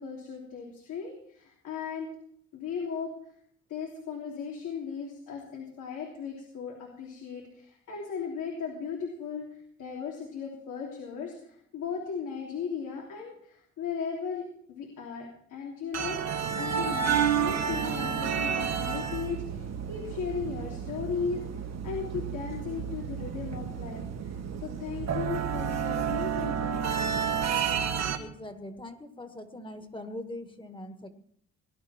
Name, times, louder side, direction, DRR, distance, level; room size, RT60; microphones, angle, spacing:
voice 1, 0.0-2.1 2.5-3.1 3.7-27.2, left 6 dB, 80° left, -1 dB, 3.4 m, -37 dB
sound 1, 15.9-28.2, right 7 dB, 60° right, 1.7 m, -31 dB
voice 2, 28.2-31.1, left 1 dB, 15° left, 7 dB, 1.9 m, -42 dB
20.0 x 11.0 x 4.5 m, 0.66 s
cardioid pair, 90°, 30 cm